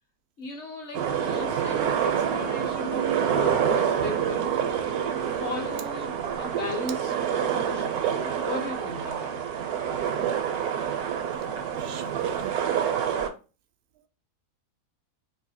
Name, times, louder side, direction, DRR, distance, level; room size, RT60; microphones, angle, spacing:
voice 1, 0.4-4.5 5.4-8.1 8.4-9.4, left 3 dB, 55° left, 0.9 m, -37 dB
sound 1, 0.9-13.3, right 8 dB, 85° right, 1.1 m, -27 dB
voice 2, 10.2-10.9 11.5-12.6, right 8 dB, 70° right, 0.6 m, -45 dB
2.8 x 2.7 x 4.0 m
omnidirectional pair, 1.6 m